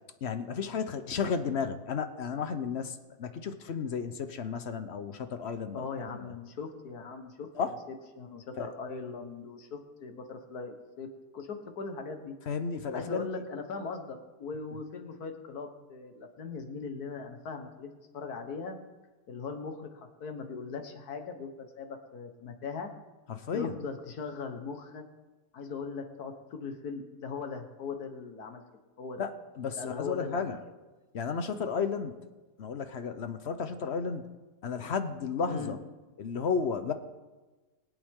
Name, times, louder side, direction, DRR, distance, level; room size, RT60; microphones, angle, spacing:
voice 1, 0.2-6.3 7.5-7.8 8.6-8.7 12.5-13.3 23.3-23.7 29.2-30.6 31.1-32.1 32.6-34.3 34.6-35.8 36.2-36.9, left 5 dB, 50° left, 10 dB, 0.9 m, -33 dB
voice 2, 5.7-11.1 11.3-12.3 12.9-18.8 19.3-22.9 23.5-25.0 25.5-28.6 29.0-29.3 29.8-30.5 35.4-35.8, left 4 dB, 75° left, 5 dB, 1.9 m, -39 dB
22.5 x 8.3 x 3.7 m, 1.2 s
omnidirectional pair, 1.7 m